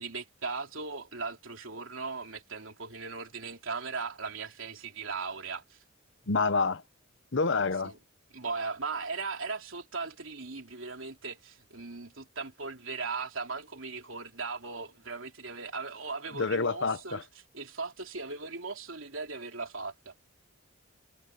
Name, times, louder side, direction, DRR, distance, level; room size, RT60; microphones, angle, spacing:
voice 1, 0.0-5.8 7.8-8.0 8.3-17.3 17.5-20.1, right 4 dB, 70° right, 3.5 m, -38 dB
voice 2, 6.3-6.8 7.3-7.9 16.3-17.2, left 4 dB, 60° left, 1.0 m, -27 dB
head